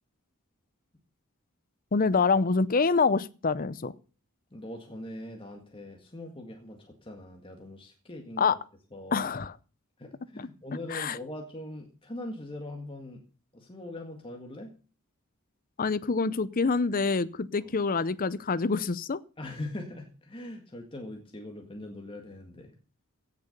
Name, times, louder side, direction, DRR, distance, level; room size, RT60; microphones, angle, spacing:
voice 1, 1.9-3.9 8.4-8.6 9.1-9.5 10.4-10.5 10.9-11.2 15.8-19.2, left 4 dB, 40° left, 0.6 m, -26 dB
voice 2, 4.5-8.6 8.9-9.3 10.0-13.2 13.5-14.7 17.6-17.7 19.4-22.7, left 1 dB, 25° left, 1.9 m, -41 dB
16.5 x 6.8 x 6.6 m
head